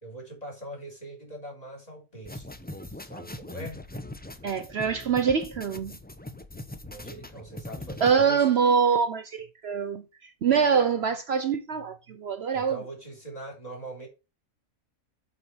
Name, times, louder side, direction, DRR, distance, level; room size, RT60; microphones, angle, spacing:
voice 1, 0.0-2.4 3.0-3.8 6.8-8.5 12.5-14.1, right 1 dB, 30° left, 3.4 m, -42 dB
sound 1, 2.2-8.1, left 1 dB, 10° left, 0.6 m, -41 dB
voice 2, 4.4-6.0 8.0-10.0 10.4-12.8, right 6 dB, 55° right, 0.9 m, -24 dB
8.1 x 4.8 x 5.7 m
omnidirectional pair, 1.4 m